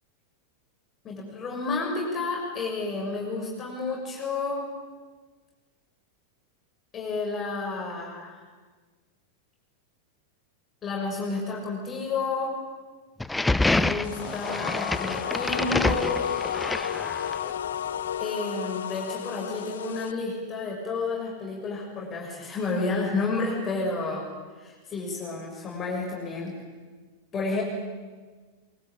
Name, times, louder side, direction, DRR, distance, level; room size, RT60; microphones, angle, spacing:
voice 1, 1.0-4.7 6.9-8.4 10.8-12.6 13.6-16.4 18.2-24.3 24.6-26.5 27.3-27.6, left 3 dB, 25° left, -1 dB, 6.7 m, -31 dB
sound 1, 13.2-17.5, left 2 dB, 5° left, 0.8 m, -27 dB
sound 2, 14.0-20.1, left 9 dB, 65° left, 0.9 m, -32 dB
24.0 x 23.5 x 9.0 m, 1.4 s
figure-of-eight pair, 90°, 0 cm